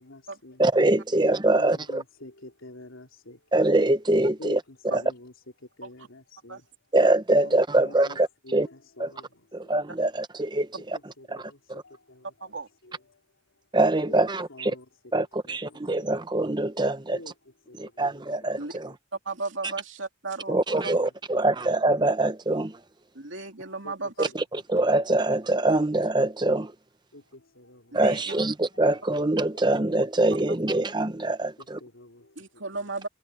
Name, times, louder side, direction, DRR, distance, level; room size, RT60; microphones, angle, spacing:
voice 1, 0.0-0.6 1.5-3.4 4.4-5.3 5.6-6.6 7.4-8.2 8.4-9.7 10.7-12.5 12.8-13.2 14.1-14.2 14.5-14.8 15.5-16.1 17.1-17.3 17.7-18.2 18.6-18.9 21.0-21.5 23.6-23.9 24.2-24.3 27.1-28.0 31.8-32.4 32.7-32.8, left 1 dB, 80° left, 3.2 m, -47 dB
voice 2, 0.6-2.0 3.5-5.0 6.9-8.7 9.0-9.1 9.5-11.8 13.7-14.7 15.1-17.2 17.8-18.9 20.5-22.8 24.2-26.7 27.9-31.8, right 2 dB, 20° right, 0.8 m, -24 dB
voice 3, 19.3-20.9 23.1-24.3 27.9-28.4 32.4-33.1, right 3 dB, 70° right, 2.6 m, -35 dB
head